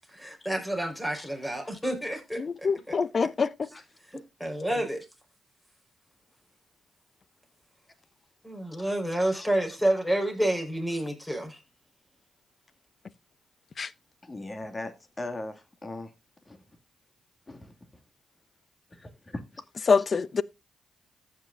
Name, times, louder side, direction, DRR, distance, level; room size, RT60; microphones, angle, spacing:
voice 1, 0.1-3.0 4.1-5.0 8.4-11.6, right 1 dB, 5° left, 4.8 m, -29 dB
voice 2, 1.6-1.9 3.7-3.8 8.8-8.9 9.2-9.5 14.2-16.1 16.5-16.6 17.5-17.7 18.9-19.6, left 2 dB, 30° left, 2.3 m, -40 dB
voice 3, 2.4-3.5 13.8-13.9 19.9-20.4, left 5 dB, 50° left, 0.7 m, -25 dB
15.0 x 6.3 x 2.6 m
supercardioid pair, 50°, 0 cm